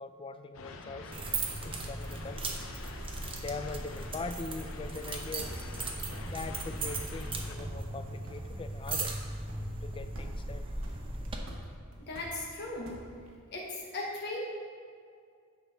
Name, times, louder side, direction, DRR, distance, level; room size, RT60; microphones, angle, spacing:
voice 1, 0.0-2.7 3.4-5.8 6.3-9.1 9.8-10.6, left 3 dB, 25° left, 10 dB, 0.3 m, -42 dB
sound 1, 0.5-7.6, left 3 dB, 70° left, 0.7 m, -46 dB
sound 2, 1.1-11.4, right 3 dB, 25° right, 0.7 m, -38 dB
sound 3, 3.8-13.4, equal, 80° right, 1.4 m, -49 dB
voice 2, 12.0-13.0 13.5-14.4, left 2 dB, 55° left, -3 dB, 1.3 m, -37 dB
9.8 x 4.2 x 5.7 m, 2.2 s
head